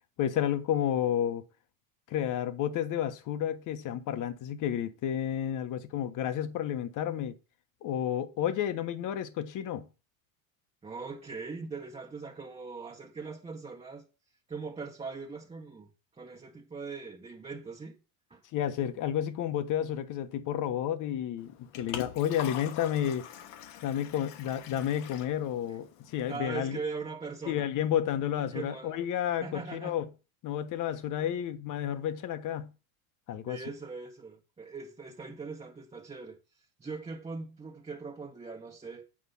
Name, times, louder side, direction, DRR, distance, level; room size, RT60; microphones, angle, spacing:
voice 1, 0.2-1.4 2.1-7.4 7.8-9.9 18.5-23.3 23.8-26.8 27.5-30.1 30.4-32.7 33.3-33.6, left 10 dB, 45° left, 1.2 m, -31 dB
voice 2, 10.8-14.1 14.5-18.0 18.3-18.4 26.3-27.7 28.5-29.0 29.4-30.0 30.8-31.3 33.4-36.4 36.8-39.1, right 4 dB, 15° right, 1.5 m, -41 dB
Liquid, 21.4-26.4, left 10 dB, 65° left, 1.4 m, -44 dB
8.7 x 5.3 x 5.5 m
supercardioid pair, 110°, 42 cm